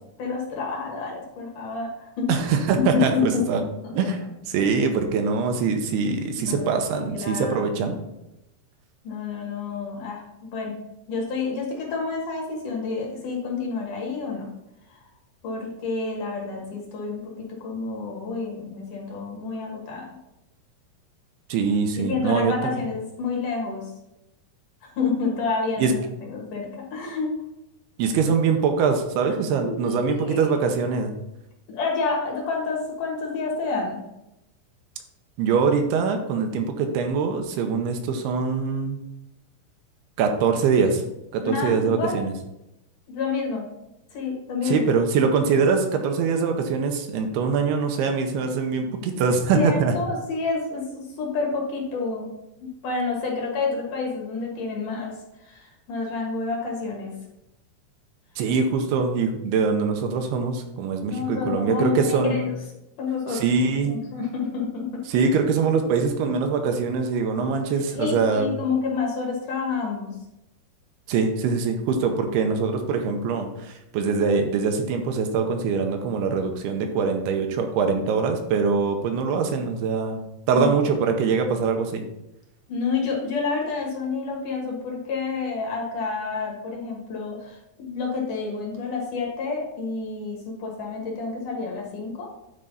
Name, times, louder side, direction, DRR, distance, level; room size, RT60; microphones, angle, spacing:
voice 1, 0.2-2.3 2.9-3.4 3.8-4.1 4.6-4.7 6.4-8.0 9.0-10.8 11.1-14.5 14.9-15.1 15.4-20.2 22.0-23.9 24.8-27.3 29.6-30.6 31.7-34.0 41.4-42.2 43.1-43.7 44.1-44.9 49.5-52.3 52.6-57.1 61.1-62.5 63.0-63.4 63.8-65.2 67.9-70.2 80.5-80.8 82.7-92.3, left 4 dB, 60° left, -1 dB, 2.6 m, -29 dB
voice 2, 2.3-3.6 4.0-4.2 4.4-8.0 21.5-22.7 25.8-25.9 28.0-31.1 35.4-39.0 40.2-41.0 41.3-42.3 44.6-49.9 58.4-62.5 63.3-63.9 65.1-68.5 71.1-80.2 80.5-82.0, right 5 dB, 85° right, 4 dB, 2.8 m, -23 dB
9.9 x 4.5 x 4.0 m, 0.90 s
omnidirectional pair, 4.7 m